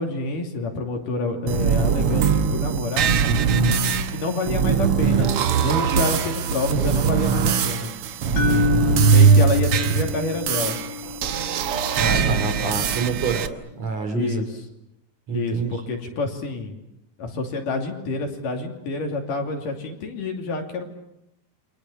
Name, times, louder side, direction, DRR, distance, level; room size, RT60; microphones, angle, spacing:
voice 1, 0.0-3.2 4.1-5.3 5.6-7.9 9.1-10.8 14.1-14.5 15.3-16.8 17.2-20.9, left 3 dB, 65° left, 3 dB, 4.3 m, -28 dB
sound 1, 1.5-13.5, right 6 dB, 75° right, 1.3 m, -21 dB
sound 2, 8.4-12.4, left 9 dB, 85° left, 3.6 m, -29 dB
voice 2, 12.0-14.4 15.3-15.8, right 5 dB, 45° right, 6 dB, 4.0 m, -27 dB
29.5 x 24.5 x 7.3 m, 0.83 s
omnidirectional pair, 4.2 m